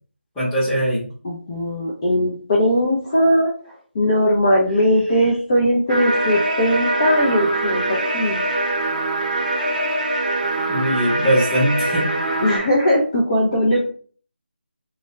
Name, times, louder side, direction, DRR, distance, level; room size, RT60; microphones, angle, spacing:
voice 1, 0.4-1.0 10.7-12.0, right 1 dB, 5° left, -10 dB, 0.8 m, -20 dB
voice 2, 1.2-3.5 3.9-8.5 12.4-13.9, equal, 25° left, -4 dB, 0.4 m, -19 dB
sound 1, 5.9-12.6, right 2 dB, 40° right, 0.6 m, -23 dB
2.3 x 2.1 x 3.0 m, 0.44 s
figure-of-eight pair, 165°, 6 cm